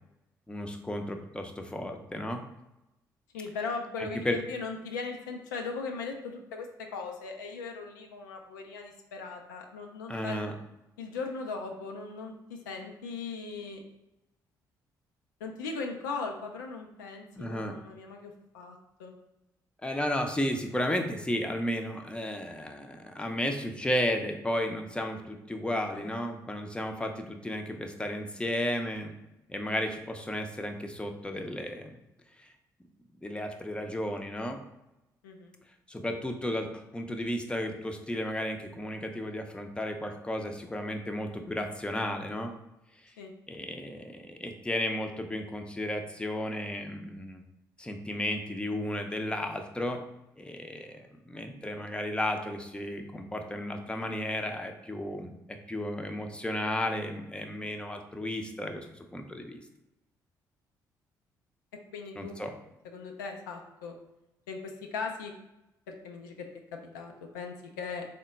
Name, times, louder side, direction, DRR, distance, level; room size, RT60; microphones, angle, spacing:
voice 1, 0.5-2.5 4.0-4.4 10.1-10.5 17.4-17.8 19.8-29.1 29.5-31.9 32.4-32.5 33.2-34.6 35.9-42.5 43.5-47.4 47.8-50.0 50.4-58.9 59.1-59.6 62.2-62.5, left 1 dB, 10° left, 4 dB, 0.5 m, -33 dB
voice 2, 3.3-10.4 11.0-13.8 15.4-19.1 25.9-26.1 35.2-35.5 43.2-43.3 61.9-62.3 62.8-64.0 64.5-65.3 65.9-66.5 66.7-68.1, left 4 dB, 85° left, 2 dB, 0.4 m, -38 dB
3.6 x 2.1 x 4.0 m, 0.93 s
hypercardioid pair, 45°, 10 cm